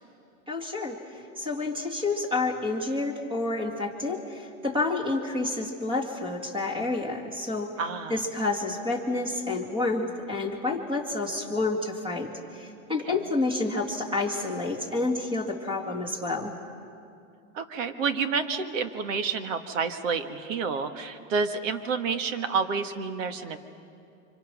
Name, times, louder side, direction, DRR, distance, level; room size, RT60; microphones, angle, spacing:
voice 1, 0.5-7.7 8.1-16.5, left 3 dB, 10° right, 2 dB, 2.2 m, -29 dB
voice 2, 7.8-8.2 13.1-13.2 17.5-23.6, right 5 dB, 60° right, 8 dB, 1.8 m, -29 dB
29.5 x 25.5 x 6.2 m, 2.6 s
supercardioid pair, 160°, 43 cm